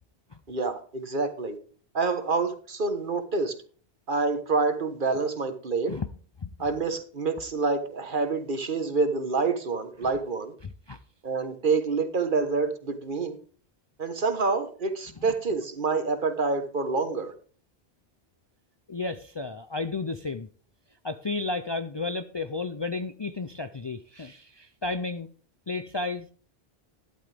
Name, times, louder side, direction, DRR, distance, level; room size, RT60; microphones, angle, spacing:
voice 1, 0.5-1.6 1.9-3.6 4.1-5.9 6.6-10.5 11.2-13.4 14.0-17.3, right 4 dB, 55° right, 1.4 m, -27 dB
voice 2, 10.6-11.0 18.9-20.5 21.0-25.3 25.7-26.3, left 3 dB, 35° left, 0.5 m, -33 dB
12.5 x 11.0 x 3.4 m
omnidirectional pair, 1.0 m